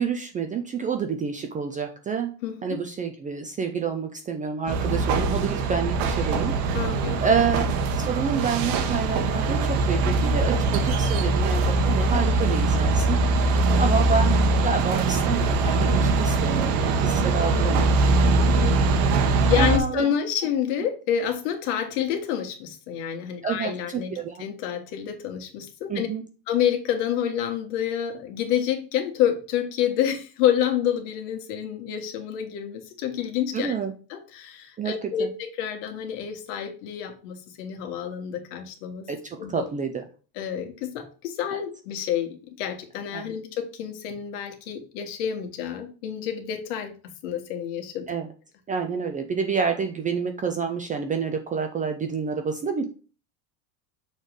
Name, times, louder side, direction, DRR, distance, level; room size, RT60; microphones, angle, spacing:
voice 1, 0.0-2.3 2.6-6.6 7.2-7.6 7.9-13.2 13.8-17.9 19.5-20.1 23.4-24.4 25.9-26.2 33.5-33.9 34.8-35.3 39.1-40.1 43.1-43.3 48.1-48.3 48.7-52.9, right 6 dB, 20° right, 5 dB, 0.3 m, -28 dB
voice 2, 2.4-2.8 6.7-7.2 17.5-17.9 18.6-24.1 24.4-26.1 26.5-33.8 34.1-39.1 39.4-39.7 40.3-46.9 47.2-48.1, left 9 dB, 70° left, 5 dB, 1.6 m, -28 dB
sound 1, 4.7-19.8, right 3 dB, 70° right, 1.3 m, -22 dB
6.5 x 3.2 x 5.1 m, 0.36 s
supercardioid pair, 130°, 48 cm